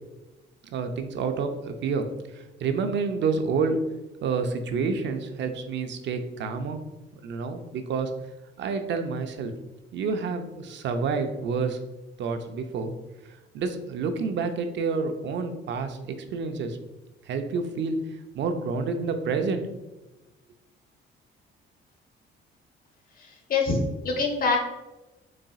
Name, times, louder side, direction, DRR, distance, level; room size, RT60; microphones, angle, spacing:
voice 1, 0.7-2.1 2.6-3.8 4.2-6.8 7.2-8.1 8.6-9.5 9.9-11.8 12.2-12.9 13.5-16.0 16.3-16.8 17.3-18.0 18.3-19.7, right 5 dB, 65° right, 7 dB, 0.5 m, -28 dB
voice 2, 23.2-23.8 24.0-24.6, left 4 dB, 45° left, 1 dB, 1.0 m, -25 dB
4.0 x 3.7 x 2.3 m, 1.0 s
cardioid pair, 90°, 20 cm